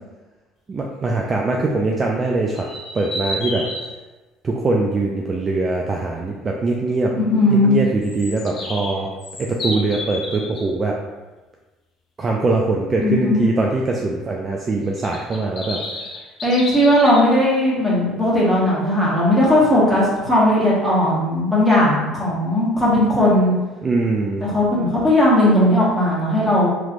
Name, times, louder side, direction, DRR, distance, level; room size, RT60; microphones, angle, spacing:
voice 1, 0.7-2.7 2.9-3.7 4.4-7.1 7.5-9.1 9.4-11.0 12.2-15.8 23.8-24.4, right 3 dB, 30° right, -1 dB, 0.4 m, -22 dB
sound 1, 2.5-3.9 8.0-10.6 15.0-17.2, left 1 dB, 45° left, 0.8 m, -31 dB
voice 2, 7.1-7.8 13.0-13.5 16.4-23.5 24.4-26.7, left 1 dB, ahead, -7 dB, 1.3 m, -17 dB
3.1 x 3.0 x 2.5 m, 1.2 s
supercardioid pair, 95°, 0 cm